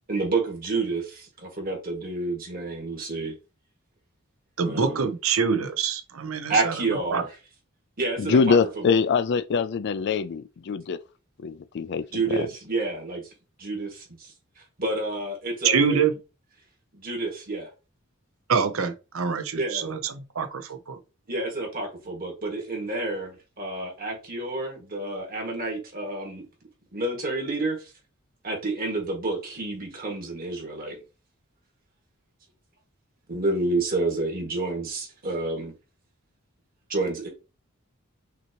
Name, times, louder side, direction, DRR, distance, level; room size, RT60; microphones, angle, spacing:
voice 1, 0.1-3.3 4.6-5.1 6.5-7.3 8.0-9.0 12.1-13.2 13.6-16.0 16.9-17.7 19.5-19.9 21.3-26.4 26.9-27.9 28.4-31.0 33.3-35.7 36.9-37.3, right 2 dB, 45° right, 1.9 m, -29 dB
voice 2, 4.6-6.7 7.1-7.2 15.6-16.1 18.5-21.0, right 6 dB, 70° right, 0.7 m, -25 dB
voice 3, 8.2-11.0 11.4-12.5, left 5 dB, 55° left, 0.4 m, -24 dB
6.0 x 2.8 x 2.9 m
head